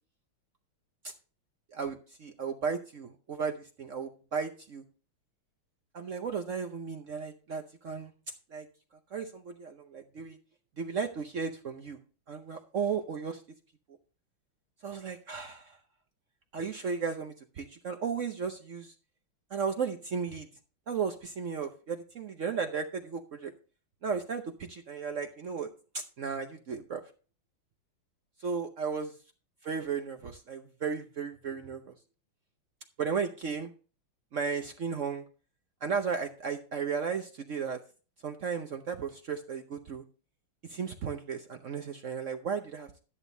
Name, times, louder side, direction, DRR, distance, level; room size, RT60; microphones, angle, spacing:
voice 1, 1.7-4.8 5.9-8.7 9.1-10.4 10.8-12.0 12.3-13.4 14.8-15.8 16.5-18.9 19.5-20.5 20.9-23.5 24.0-25.7 25.9-27.0 28.4-29.1 29.6-31.9 33.0-33.7 34.3-35.2 35.8-37.8 38.2-40.0 40.7-42.9, right 6 dB, 70° right, 5 dB, 0.7 m, -35 dB
11.0 x 10.0 x 2.7 m, 0.36 s
omnidirectional pair, 2.3 m